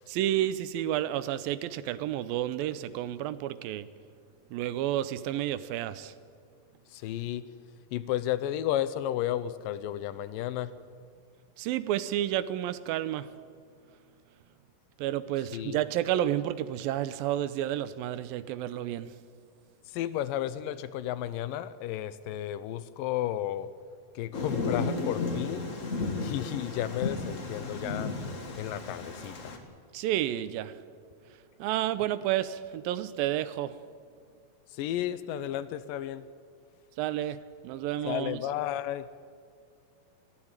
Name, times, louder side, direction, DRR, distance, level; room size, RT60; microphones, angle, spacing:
voice 1, 0.1-3.9 4.5-6.1 11.6-13.3 15.0-19.2 29.9-30.7 31.6-33.8 37.0-38.4, right 12 dB, 85° right, 15 dB, 2.6 m, -30 dB
voice 2, 6.9-7.4 7.9-10.7 15.5-15.8 19.9-23.7 24.2-25.7 26.2-28.1 28.6-29.6 34.7-36.2 38.1-39.1, left 12 dB, 80° left, 15 dB, 2.4 m, -33 dB
Thunder, 24.3-29.6, left 3 dB, 40° left, 1.2 m, -34 dB
21.0 x 15.0 x 8.9 m, 2.2 s
omnidirectional pair, 4.0 m